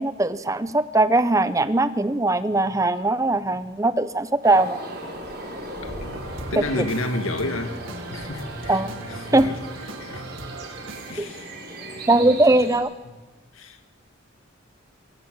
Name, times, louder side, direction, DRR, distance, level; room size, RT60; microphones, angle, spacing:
voice 1, 0.0-4.8 8.7-8.9 9.3-9.5 11.2-11.3 12.1-12.9, right 2 dB, 15° right, 0.7 m, -20 dB
sound 1, 4.4-12.8, right 1 dB, 50° right, 5.3 m, -38 dB
voice 2, 5.8-6.2 6.5-7.8 8.1-9.6 10.0-10.3 11.1-11.5 12.0-12.6 13.5-13.8, left 1 dB, 80° left, 2.2 m, -31 dB
sound 2, 6.0-11.1, right 2 dB, 70° right, 2.0 m, -38 dB
24.0 x 14.5 x 7.7 m
head